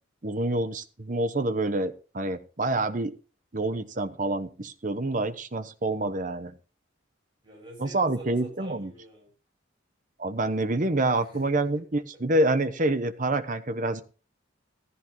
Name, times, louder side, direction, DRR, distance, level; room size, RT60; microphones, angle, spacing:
voice 1, 0.2-3.1 3.5-6.5 7.8-8.9 10.2-14.0, right 2 dB, 40° right, 11 dB, 0.9 m, -27 dB
voice 2, 7.4-9.3 11.1-11.5, right 1 dB, 25° right, -1 dB, 6.6 m, -46 dB
14.5 x 14.0 x 3.1 m, 0.35 s
head